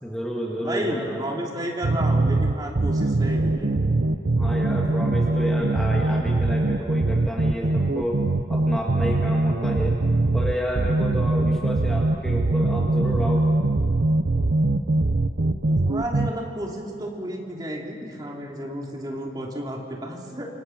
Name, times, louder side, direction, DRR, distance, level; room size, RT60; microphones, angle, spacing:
voice 1, 0.0-1.2 4.4-8.2 8.5-10.0 10.3-13.5, equal, 5° left, -3 dB, 2.0 m, -30 dB
voice 2, 0.6-3.8 15.7-20.5, right 1 dB, 25° right, -1 dB, 3.1 m, -32 dB
sound 1, 1.8-16.3, right 2 dB, 70° right, 0.7 m, -22 dB
28.0 x 25.5 x 6.0 m, 2.6 s
head